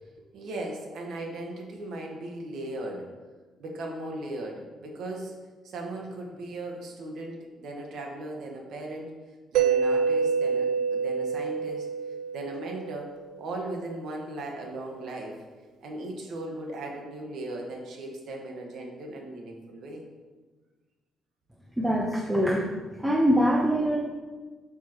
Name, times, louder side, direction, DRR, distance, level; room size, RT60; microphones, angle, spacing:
voice 1, 0.3-3.1 3.6-5.4 5.6-9.1 9.5-11.9 12.3-15.5 15.8-20.0, right 1 dB, 70° right, 1 dB, 1.5 m, -37 dB
Mallet percussion, 9.5-13.3, right 6 dB, 90° right, 0.3 m, -27 dB
voice 2, 21.8-22.7 23.0-24.0, equal, 10° right, -1 dB, 0.9 m, -23 dB
7.8 x 6.7 x 3.1 m, 1.3 s
cardioid pair, 90°, 0 cm